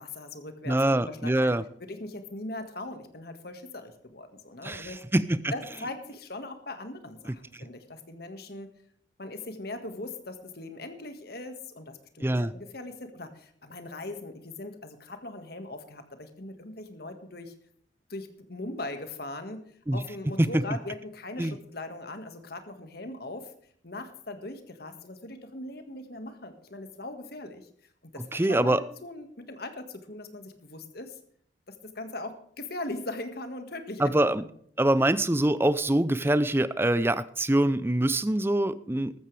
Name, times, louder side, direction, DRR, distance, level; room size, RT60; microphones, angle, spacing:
voice 1, 0.0-1.5 1.8-5.0 5.5-8.7 9.2-17.5 18.1-19.6 19.9-23.5 23.8-27.7 28.0-31.2 31.7-34.5, left 2 dB, 55° left, 8 dB, 1.7 m, -40 dB
voice 2, 0.7-1.6 4.6-5.5 7.3-7.7 12.2-12.5 19.9-20.0 20.4-20.5 21.4-21.6 28.3-28.8 34.0-34.4 34.8-39.1, right 1 dB, 10° right, 15 dB, 0.5 m, -24 dB
14.5 x 13.5 x 3.4 m, 0.63 s
head